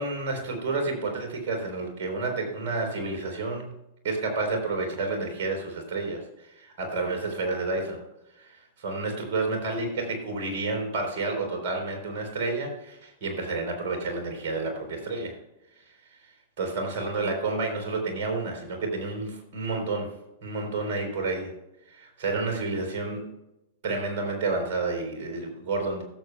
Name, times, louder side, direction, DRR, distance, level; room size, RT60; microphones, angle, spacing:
voice 1, 0.0-3.7 4.0-8.0 8.4-15.4 16.6-20.1 20.4-21.5 21.9-23.3 23.8-26.0, right 3 dB, 60° right, 2 dB, 3.5 m, -30 dB
16.5 x 7.4 x 2.2 m, 0.90 s
hypercardioid pair, 105°, 0 cm